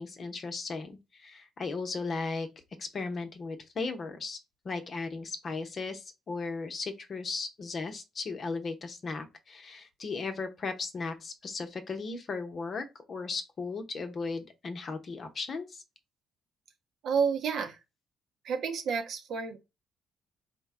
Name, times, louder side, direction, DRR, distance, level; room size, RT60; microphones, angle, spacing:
voice 1, 0.0-2.5 2.8-4.4 4.6-15.8, left 4 dB, 50° left, 0.7 m, -36 dB
voice 2, 17.0-17.8 18.4-19.6, right 6 dB, 65° right, 0.6 m, -30 dB
3.9 x 2.2 x 3.6 m
hypercardioid pair, 45°, 0 cm